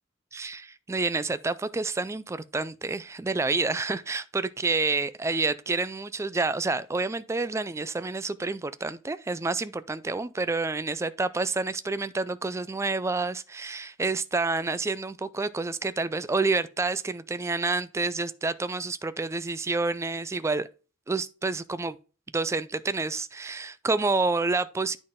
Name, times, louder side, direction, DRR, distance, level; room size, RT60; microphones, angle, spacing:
voice 1, 0.3-20.7 21.1-22.0 22.3-25.0, right 3 dB, 15° right, 0.3 m, -28 dB
9.7 x 4.0 x 3.7 m
head